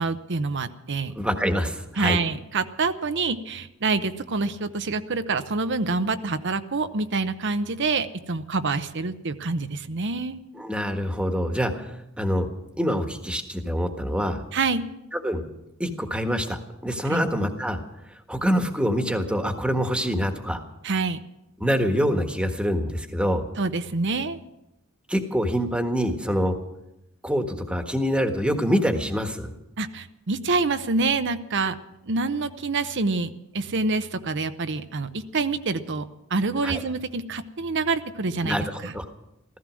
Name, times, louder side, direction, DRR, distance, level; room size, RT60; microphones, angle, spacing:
voice 1, 0.0-1.1 2.0-10.4 14.5-14.9 17.1-17.3 20.8-21.2 23.6-24.4 29.8-31.8 32.0-36.0 36.3-38.6 38.8-38.9, right 3 dB, 55° right, 10 dB, 0.8 m, -26 dB
voice 2, 1.1-2.2 10.5-14.4 15.2-17.8 18.3-20.6 21.6-23.4 25.1-26.6 27.2-29.5 36.6-36.8 38.4-39.0, equal, 5° right, 5 dB, 1.4 m, -25 dB
15.0 x 15.0 x 6.3 m, 0.88 s
head